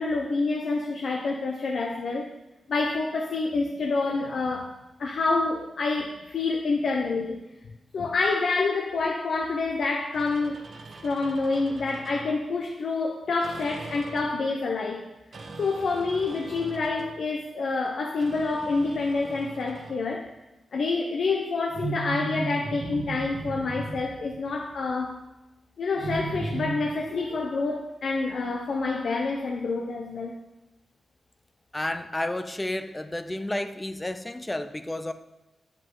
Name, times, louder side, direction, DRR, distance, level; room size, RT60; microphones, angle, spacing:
voice 1, 0.0-2.3 2.7-4.7 5.0-7.4 7.9-10.6 11.0-15.0 15.6-20.3 20.7-25.2 25.8-30.4, left 3 dB, 70° left, 1 dB, 0.8 m, -27 dB
sound 1, 10.1-12.4 13.4-14.5 15.3-17.2 18.2-20.1 21.7-24.9 26.0-27.4, right 3 dB, 60° right, 1.1 m, -38 dB
voice 2, 31.7-35.1, left 1 dB, 15° left, 10 dB, 0.5 m, -31 dB
8.1 x 7.6 x 3.8 m, 1.0 s
cardioid pair, 80°, 0 cm